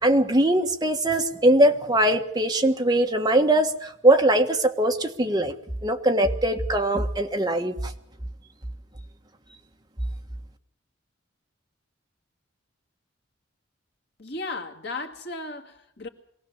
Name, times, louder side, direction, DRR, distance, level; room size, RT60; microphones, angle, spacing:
voice 1, 0.0-5.5 5.8-7.9, right 1 dB, 20° right, 4 dB, 1.5 m, -21 dB
voice 2, 14.2-16.1, left 3 dB, 55° left, 4 dB, 2.2 m, -35 dB
23.5 x 17.0 x 7.3 m, 0.73 s
head